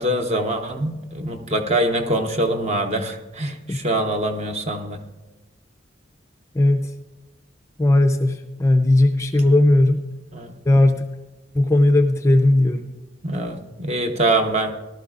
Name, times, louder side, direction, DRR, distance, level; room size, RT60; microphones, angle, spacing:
voice 1, 0.0-5.0 10.3-10.6 13.2-14.7, right 1 dB, 35° right, 5 dB, 0.9 m, -24 dB
voice 2, 6.5-6.9 7.8-10.1 10.7-11.1 11.5-12.9, left 1 dB, 15° left, 5 dB, 0.5 m, -17 dB
18.0 x 12.0 x 2.5 m, 1.1 s
head